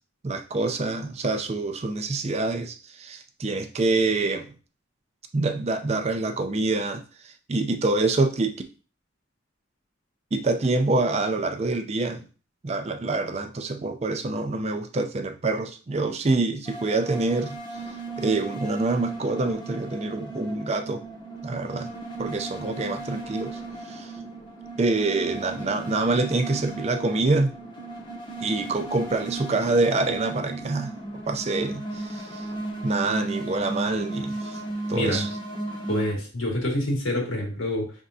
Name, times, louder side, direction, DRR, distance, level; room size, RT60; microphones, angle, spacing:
voice 1, 0.2-4.5 5.3-7.0 7.5-8.6 10.3-12.2 12.6-17.6 18.2-21.0 21.4-21.9 22.2-23.6 23.9-24.1 24.8-27.5 28.4-30.9 31.3-32.4 32.8-34.6 34.9-35.3, right 3 dB, 30° right, 6 dB, 0.4 m, -26 dB
sound 1, 16.6-36.1, right 2 dB, 25° left, 0.7 m, -35 dB
voice 2, 34.9-35.2 35.9-37.9, left 1 dB, 85° left, 0 dB, 1.8 m, -27 dB
5.2 x 3.5 x 2.6 m, 0.35 s
head